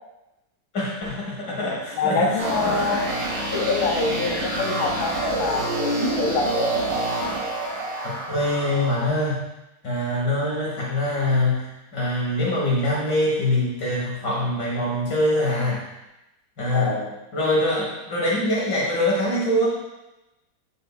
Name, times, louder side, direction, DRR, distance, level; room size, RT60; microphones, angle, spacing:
voice 1, 0.7-2.9 8.0-9.4 9.8-15.8 16.6-17.0 17.3-19.7, left 1 dB, 55° left, -5 dB, 2.2 m, -24 dB
voice 2, 1.5-3.1 3.5-6.7 16.7-17.2, left 3 dB, 75° left, 0 dB, 1.9 m, -25 dB
sound 1, 2.4-9.1, right 2 dB, 55° right, 3.1 m, -27 dB
8.4 x 6.4 x 2.4 m, 0.94 s
omnidirectional pair, 2.3 m